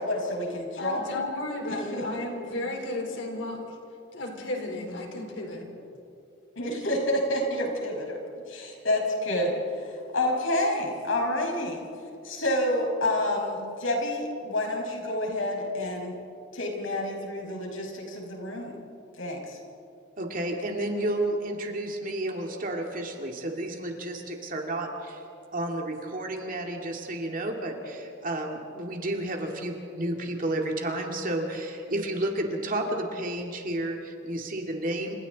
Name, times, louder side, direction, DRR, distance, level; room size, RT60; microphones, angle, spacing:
voice 1, 0.0-1.2 1.7-2.3 6.6-8.2 8.5-11.8 12.2-16.2 16.5-18.7 19.2-19.6, left 1 dB, 85° left, 0 dB, 5.8 m, -29 dB
voice 2, 0.8-3.8 4.1-5.7, left 2 dB, 65° left, 2 dB, 4.0 m, -33 dB
voice 3, 20.2-25.2 25.5-35.1, right 1 dB, 45° right, 2 dB, 2.3 m, -31 dB
29.5 x 27.5 x 4.1 m, 2.6 s
head